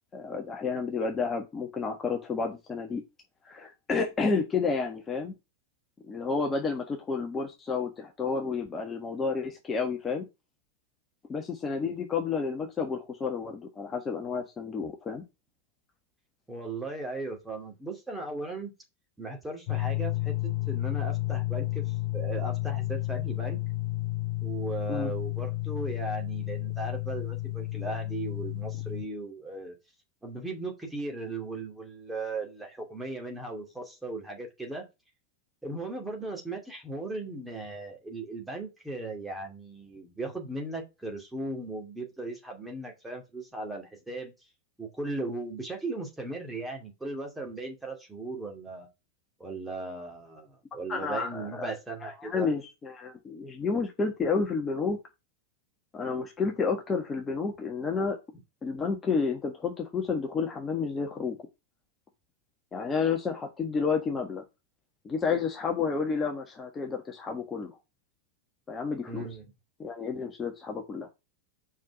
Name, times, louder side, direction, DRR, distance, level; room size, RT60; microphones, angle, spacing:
voice 1, 0.1-3.0 3.4-5.3 6.1-10.2 11.3-15.2 24.9-25.1 50.9-51.7 52.0-55.0 55.9-58.2 58.6-61.4 62.7-64.4 65.0-67.7 68.7-69.3 69.8-71.1, left 5 dB, 20° left, 2 dB, 1.4 m, -30 dB
voice 2, 16.5-18.7 19.2-23.6 24.4-29.8 30.2-34.8 35.6-44.3 44.8-48.9 49.4-52.5 69.1-69.4, right 2 dB, 5° right, 2 dB, 2.5 m, -37 dB
sound 1, 19.7-29.0, left 19 dB, 45° left, 0.5 m, -31 dB
5.5 x 5.2 x 6.3 m, 0.25 s
figure-of-eight pair, 90°, 0 cm